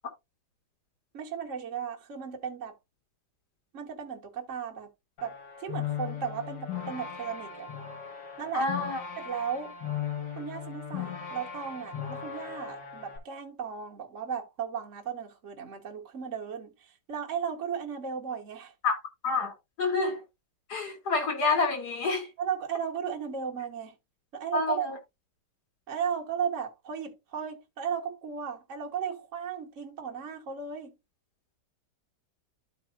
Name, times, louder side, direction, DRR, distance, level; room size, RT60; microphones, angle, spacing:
voice 1, 1.1-2.8 3.7-4.9 5.2-7.7 8.4-8.7 9.2-9.8 10.4-18.7 22.4-23.9 24.3-24.9 25.9-30.9, right 7 dB, 45° right, 1.6 m, -35 dB
sound 1, 5.2-13.2, left 8 dB, 85° left, 2.5 m, -38 dB
voice 2, 8.5-9.0 18.8-19.0 19.2-20.2 20.7-22.3 24.5-25.0, left 3 dB, 65° left, 2.6 m, -28 dB
13.0 x 4.5 x 2.4 m
omnidirectional pair, 1.9 m